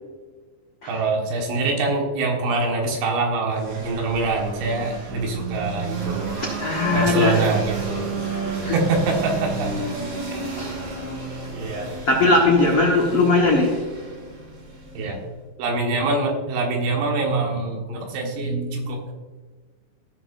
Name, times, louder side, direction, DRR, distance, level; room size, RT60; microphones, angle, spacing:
voice 1, 0.9-6.3 6.9-8.1 8.5-9.7 10.3-10.4 11.5-11.9 15.0-15.2 15.6-19.1, right 3 dB, 90° right, 0 dB, 3.9 m, -24 dB
sound 1, 3.5-15.3, right 3 dB, 50° right, 4.5 m, -32 dB
voice 2, 6.4-7.5 8.6-8.8 10.6-10.7 12.1-13.9, left 2 dB, 80° left, -2 dB, 1.2 m, -19 dB
16.0 x 6.6 x 2.6 m, 1.4 s
omnidirectional pair, 4.9 m